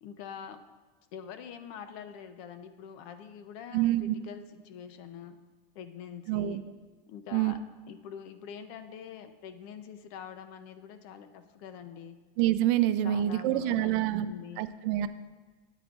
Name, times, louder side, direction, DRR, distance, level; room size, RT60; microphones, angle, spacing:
voice 1, 0.0-0.6 1.1-5.4 5.7-6.6 7.1-7.6 7.9-12.2 13.0-14.7, left 8 dB, 50° left, 9 dB, 0.6 m, -45 dB
voice 2, 3.7-4.2 6.3-6.6 7.3-7.5 12.4-15.1, right 13 dB, 60° right, 12 dB, 0.4 m, -27 dB
13.0 x 9.0 x 2.4 m, 1.3 s
cardioid pair, 165°, 31 cm